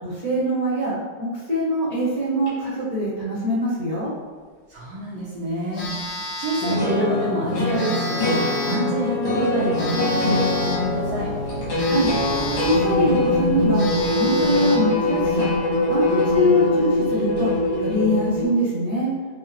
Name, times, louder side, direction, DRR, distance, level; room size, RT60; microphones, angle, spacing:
voice 1, 0.0-0.9 1.2-4.1 11.8-12.1 12.6-13.8 14.1-15.5 15.9-17.5 17.8-19.1, equal, 25° right, -12 dB, 0.9 m, -23 dB
sound 1, 2.5-2.6 5.8-5.9 6.6-18.4, left 2 dB, 90° left, 1.9 m, -22 dB
voice 2, 4.7-11.3, right 2 dB, 75° right, -7 dB, 1.4 m, -28 dB
Telephone, 5.7-6.9 7.7-8.9 9.7-10.9 11.7-12.9 13.4-13.5 13.7-14.9, equal, 70° left, 1.6 m, -30 dB
4.7 x 2.4 x 2.7 m, 1.5 s
omnidirectional pair, 2.1 m